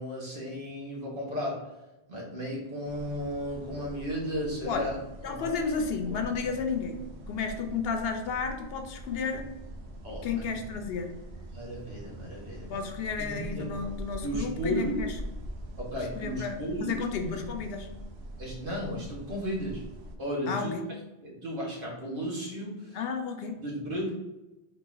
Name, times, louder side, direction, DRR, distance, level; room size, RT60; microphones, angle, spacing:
voice 1, 0.0-1.7 2.1-4.9 5.3-5.5 6.1-6.2 10.0-10.5 11.5-12.8 13.2-13.7 14.2-15.0 15.8-16.9 17.2-17.5 18.4-19.8 20.2-20.7 21.2-23.0 23.6-24.1, equal, 55° right, -4 dB, 1.5 m, -34 dB
sound 1, 2.8-20.2, right 1 dB, 85° right, 1.0 m, -43 dB
voice 2, 5.2-9.4 10.2-11.1 12.7-15.1 16.1-17.9 20.5-20.9 22.9-23.6, left 5 dB, 70° left, 6 dB, 0.8 m, -32 dB
4.1 x 2.7 x 3.8 m, 1.0 s
omnidirectional pair, 1.1 m